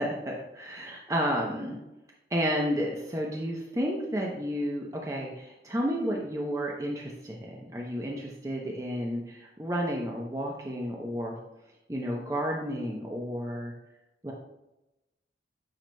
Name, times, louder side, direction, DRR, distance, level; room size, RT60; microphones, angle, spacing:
voice 1, 0.0-1.8 2.3-11.4 11.9-13.7 14.2-14.3, equal, 20° right, -2 dB, 0.8 m, -31 dB
9.1 x 5.7 x 2.3 m, 0.94 s
head